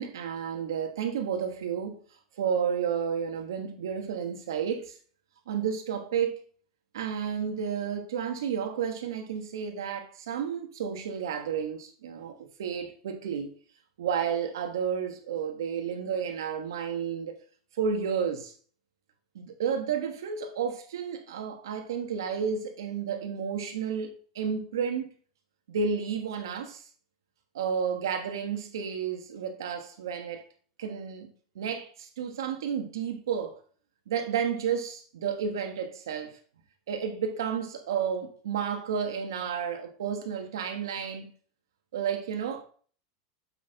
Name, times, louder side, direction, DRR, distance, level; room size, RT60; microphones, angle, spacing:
voice 1, 0.0-2.0 2.4-5.0 5.5-6.4 6.9-13.5 14.0-17.4 17.8-18.5 19.3-25.1 25.7-26.9 27.5-30.4 30.8-31.3 31.5-33.6 34.1-36.4 36.9-41.3 41.9-42.6, right 7 dB, 90° right, 1.4 m, -31 dB
7.7 x 6.3 x 4.0 m
supercardioid pair, 125°, 2 cm